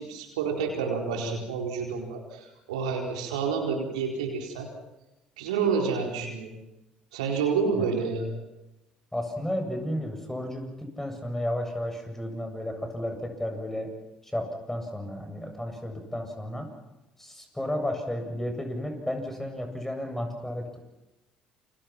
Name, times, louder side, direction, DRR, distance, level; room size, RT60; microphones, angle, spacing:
voice 1, 0.0-4.7 5.4-6.5 7.1-8.3, right 5 dB, 85° right, 1 dB, 4.4 m, -29 dB
voice 2, 9.1-13.9 14.2-16.7 17.2-20.8, left 1 dB, 10° left, 5 dB, 7.8 m, -33 dB
29.0 x 25.5 x 6.1 m, 0.97 s
hypercardioid pair, 55°, 3 cm